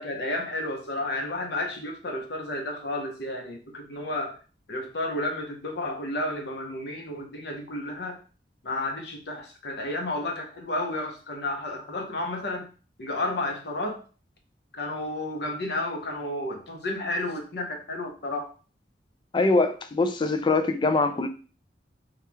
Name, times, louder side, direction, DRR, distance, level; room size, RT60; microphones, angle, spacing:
voice 1, 0.0-4.4 4.7-8.2 8.6-12.7 13.0-14.0 14.8-18.5, left 2 dB, 65° left, 0.9 m, -32 dB
voice 2, 19.3-21.3, left 3 dB, 25° left, 0.4 m, -23 dB
3.7 x 2.9 x 3.4 m
head